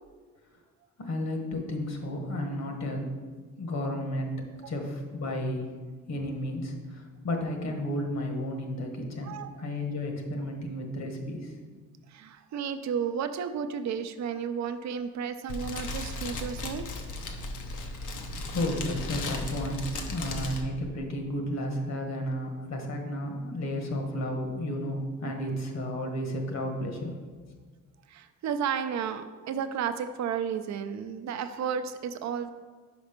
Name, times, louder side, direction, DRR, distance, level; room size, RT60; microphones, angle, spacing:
voice 1, 1.0-3.1 3.6-4.3 4.7-5.7 6.1-11.5 18.5-27.1, left 1 dB, 60° left, 3 dB, 1.3 m, -32 dB
voice 2, 9.2-9.6 12.1-16.9 28.1-32.5, right 7 dB, 65° right, 10 dB, 0.6 m, -33 dB
Fire, 15.5-20.6, left 2 dB, 80° left, 0.9 m, -36 dB
5.3 x 5.0 x 5.2 m, 1.4 s
cardioid pair, 90°, 30 cm